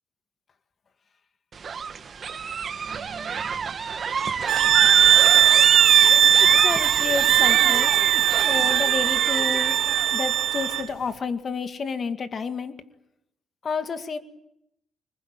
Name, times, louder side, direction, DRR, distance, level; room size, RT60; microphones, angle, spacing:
sound 1, 1.5-10.1, right 6 dB, 45° right, 2.1 m, -30 dB
sound 2, 4.2-11.4, right 4 dB, 30° right, 3.9 m, -41 dB
sound 3, 4.5-10.9, right 11 dB, 80° right, 1.6 m, -18 dB
voice 1, 6.4-8.0 8.4-9.8 10.1-12.8 13.6-14.2, left 5 dB, 45° left, 9 dB, 2.1 m, -30 dB
25.0 x 21.0 x 9.0 m, 0.82 s
cardioid pair, 90°, 0 cm